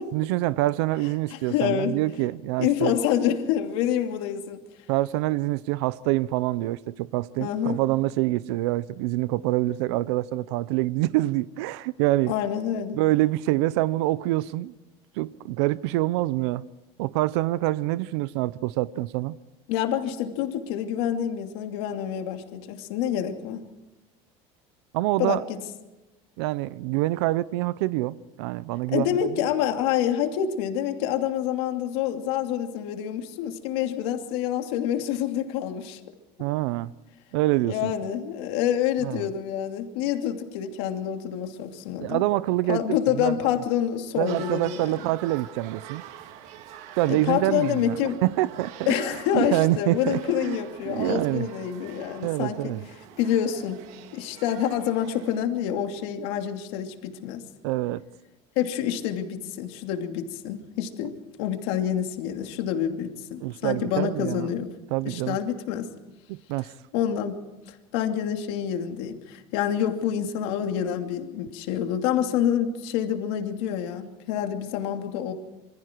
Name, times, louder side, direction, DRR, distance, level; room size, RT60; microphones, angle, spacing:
voice 1, 0.1-2.9 4.9-12.3 12.9-14.7 15.2-16.7 17.0-19.4 24.9-25.4 26.4-29.3 36.4-36.9 37.3-37.9 39.0-39.3 42.0-43.4 44.2-46.0 47.0-48.7 49.3-50.6 50.9-51.5 52.2-52.8 57.6-58.0 63.4-64.5 64.9-65.4 66.3-66.7, right 17 dB, 90° right, 0.7 m, -26 dB
voice 2, 1.3-2.0 2.6-4.6 7.4-7.8 12.3-13.0 19.7-23.6 25.2-25.6 28.9-36.0 37.6-42.2 42.7-44.9 47.1-48.2 48.9-52.7 53.2-53.8 54.1-57.4 58.6-64.7 65.0-65.9 66.9-67.4 67.9-75.3, left 10 dB, 75° left, 2.7 m, -27 dB
sound 1, 44.3-55.4, right 11 dB, 55° right, 1.8 m, -45 dB
27.0 x 24.5 x 4.6 m
cardioid pair, 170°, 14 cm